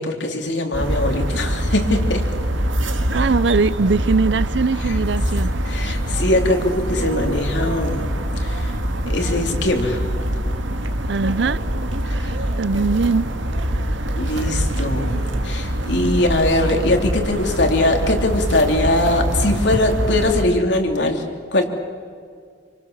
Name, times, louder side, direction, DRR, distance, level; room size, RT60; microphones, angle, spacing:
voice 1, 0.0-2.2 4.9-5.0 5.6-8.1 8.4-8.8 9.1-10.1 12.2-12.4 14.1-21.2 21.5-21.7, left 1 dB, 65° left, 3.4 m, -21 dB
sound 1, 0.7-20.4, equal, 80° right, 2.1 m, -24 dB
voice 2, 3.1-5.6 5.8-5.9 11.1-11.6 12.0-13.3 13.7-14.2, right 4 dB, 65° right, 0.6 m, -21 dB
28.5 x 25.5 x 7.3 m
head